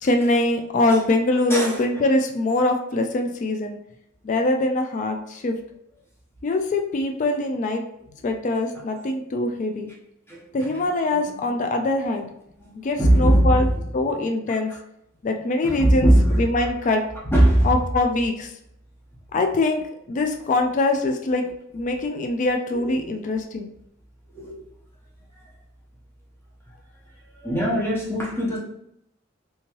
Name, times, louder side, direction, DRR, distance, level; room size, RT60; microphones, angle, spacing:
voice 1, 0.0-3.8 4.2-5.6 6.4-7.9 8.2-9.9 10.5-12.3 12.8-13.7 13.9-14.7 15.2-17.0 17.6-18.5 19.3-23.7, left 2 dB, 40° left, 4 dB, 0.3 m, -23 dB
voice 2, 10.3-10.8 11.1-11.6 12.6-12.7 13.0-13.8 14.5-14.8 15.6-16.7 17.3-17.8 21.0-21.1 22.7-23.2 24.3-24.5 25.4-25.5 27.3-28.6, right 1 dB, 10° left, -5 dB, 0.9 m, -21 dB
3.4 x 2.9 x 3.0 m, 0.76 s
head